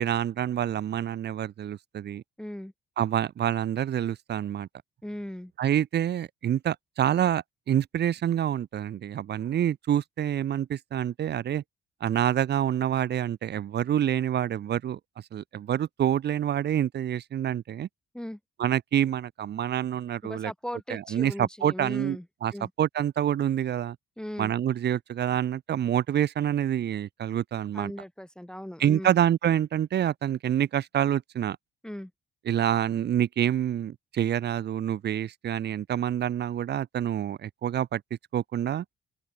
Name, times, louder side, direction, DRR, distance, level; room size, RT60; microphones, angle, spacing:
voice 1, 0.0-2.2 3.0-4.7 5.6-11.6 12.0-15.0 15.3-17.9 18.6-20.5 20.9-22.5 22.8-24.0 24.4-27.9 28.8-31.6 32.5-38.0 38.3-38.8, right 10 dB, 55° right, 1.0 m, -27 dB
voice 2, 2.4-2.7 5.0-5.5 18.1-18.4 20.2-22.3 22.5-22.7 24.2-24.5 27.7-29.2 31.8-32.1, equal, 5° left, 1.9 m, -38 dB
open air
cardioid pair, 90°, 20 cm